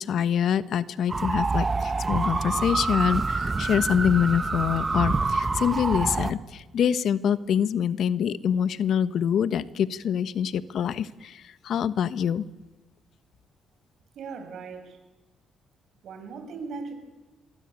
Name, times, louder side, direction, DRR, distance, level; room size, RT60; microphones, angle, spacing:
voice 1, 0.0-12.4, left 8 dB, 70° left, 14 dB, 1.2 m, -25 dB
sound 1, 1.1-6.3, right 3 dB, 25° right, 1.7 m, -26 dB
voice 2, 14.1-15.0 16.0-16.9, right 4 dB, 70° right, 7 dB, 6.3 m, -38 dB
26.5 x 23.0 x 8.4 m, 1.1 s
cardioid pair, 90°, 0 cm